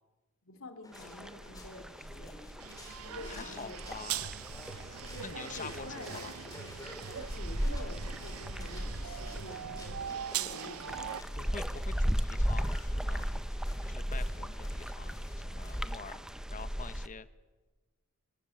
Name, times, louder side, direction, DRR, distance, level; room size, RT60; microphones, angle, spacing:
voice 1, 0.4-2.4 3.0-4.2 5.1-11.6, left 2 dB, 65° left, 8 dB, 2.6 m, -49 dB
sound 1, 0.8-16.1, left 2 dB, 15° left, 3.5 m, -53 dB
sound 2, 0.9-17.1, equal, 5° right, 0.6 m, -37 dB
sound 3, 2.6-11.2, right 9 dB, 75° right, 0.7 m, -41 dB
voice 2, 3.2-4.4 5.2-6.3 11.3-13.3 13.9-16.2 16.5-17.3, left 5 dB, 35° left, 13 dB, 0.9 m, -46 dB
27.0 x 15.5 x 9.0 m, 1.2 s
head